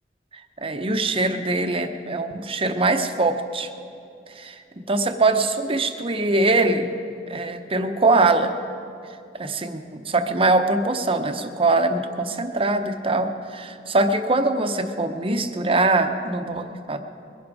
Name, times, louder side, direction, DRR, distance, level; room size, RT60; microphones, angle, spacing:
voice 1, 0.6-3.7 4.4-4.6 4.9-6.9 7.3-8.6 9.4-17.0, right 2 dB, 35° right, 7 dB, 0.8 m, -22 dB
21.5 x 11.5 x 4.8 m, 2.5 s
head